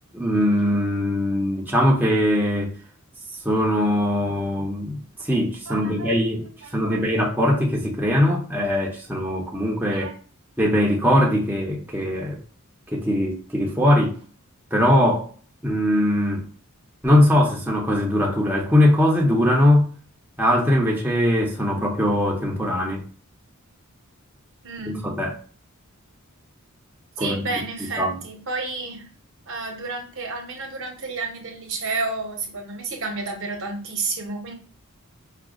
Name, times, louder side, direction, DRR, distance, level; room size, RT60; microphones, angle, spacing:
voice 1, 0.1-2.7 3.4-6.5 6.7-10.1 10.6-12.4 12.9-14.2 14.7-15.3 15.6-16.4 17.0-19.9 20.4-23.0 24.9-25.3 27.2-27.4 27.8-28.2, left 1 dB, 10° right, 0.6 m, -21 dB
voice 2, 5.7-6.3 6.6-7.0 9.9-10.1 24.6-25.0 27.2-29.0 29.5-34.5, right 3 dB, 60° right, 0.9 m, -31 dB
4.9 x 2.2 x 2.3 m
head